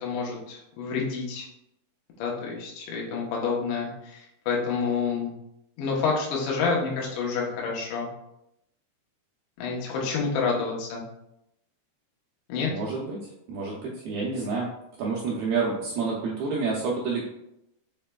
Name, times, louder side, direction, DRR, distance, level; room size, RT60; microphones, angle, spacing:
voice 1, 0.0-1.5 2.2-5.3 5.8-8.1 9.6-11.0 12.5-12.7, left 5 dB, 85° left, -2 dB, 3.2 m, -28 dB
voice 2, 12.7-13.2 13.5-14.7 15.0-17.2, right 4 dB, 85° right, -4 dB, 2.1 m, -28 dB
7.0 x 3.2 x 2.2 m, 0.84 s
omnidirectional pair, 5.0 m